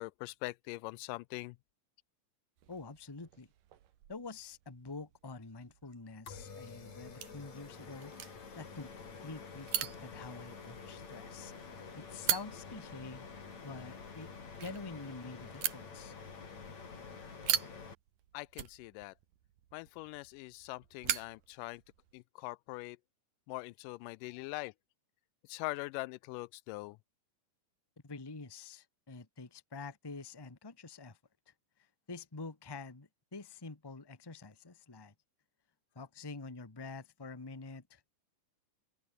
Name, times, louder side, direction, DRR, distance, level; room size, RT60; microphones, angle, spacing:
voice 1, 0.0-1.6 18.3-19.1 19.7-21.8 22.1-23.0 23.5-24.7 25.5-27.0, left 21 dB, 85° left, 2.1 m, -42 dB
sound 1, 2.6-22.2, right 11 dB, 85° right, 3.3 m, -42 dB
voice 2, 2.7-3.5 4.1-8.9 9.2-11.5 12.0-13.3 13.6-14.3 14.6-16.1 28.0-31.2 32.1-35.1 35.9-38.0, left 3 dB, 15° left, 0.9 m, -47 dB
sound 2, 6.3-17.9, left 5 dB, 55° left, 5.4 m, -48 dB
open air
omnidirectional pair, 3.7 m